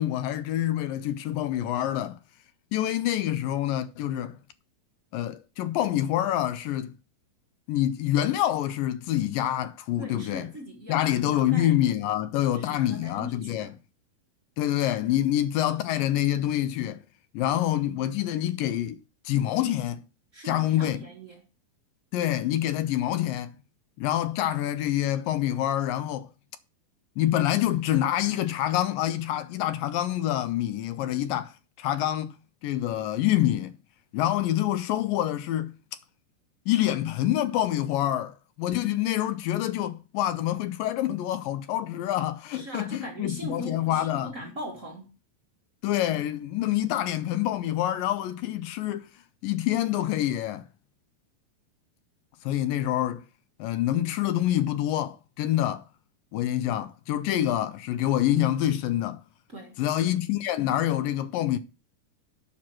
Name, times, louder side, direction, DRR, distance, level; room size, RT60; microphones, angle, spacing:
voice 1, 0.0-2.2 2.7-4.4 5.1-6.9 7.7-10.5 10.9-13.7 14.6-17.0 17.3-19.0 19.3-20.0 20.4-21.0 22.1-23.5 24.0-26.3 27.2-32.3 32.6-33.7 34.1-35.7 36.7-44.3 45.8-49.1 49.4-50.7 52.4-53.2 53.6-55.9 56.3-59.2 59.8-61.6, left 12 dB, 80° left, 2.3 m, -26 dB
voice 2, 10.0-11.7 12.5-13.7 20.3-21.5 42.5-45.1 59.5-59.7, equal, 50° right, 0.9 m, -40 dB
7.6 x 5.9 x 7.4 m
omnidirectional pair, 4.2 m